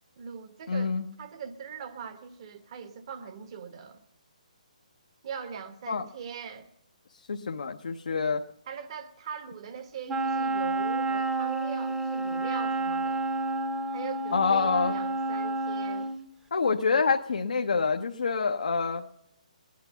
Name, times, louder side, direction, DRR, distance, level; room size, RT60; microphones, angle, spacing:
voice 1, 0.2-4.0 5.2-6.7 8.7-13.3 13.9-16.1, right 7 dB, 45° right, 1.3 m, -41 dB
voice 2, 0.7-1.0 5.9-6.0 7.3-8.4 14.3-15.0 16.5-19.0, left 5 dB, 75° left, 0.8 m, -26 dB
Wind instrument woodwind instrument, 10.1-16.2, right 2 dB, 10° right, 0.9 m, -30 dB
19.5 x 10.5 x 5.7 m
hypercardioid pair, 150°, 4 cm